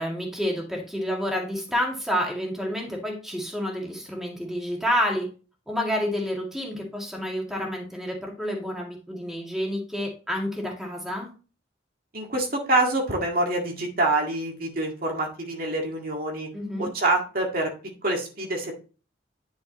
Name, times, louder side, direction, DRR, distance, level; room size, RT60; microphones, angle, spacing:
voice 1, 0.0-5.3 5.7-11.3 16.5-16.9, equal, ahead, -1 dB, 2.1 m, -29 dB
voice 2, 12.1-16.5 16.8-17.7 18.0-18.7, right 2 dB, 50° right, 0 dB, 1.9 m, -26 dB
10.0 x 5.7 x 3.0 m, 0.35 s
head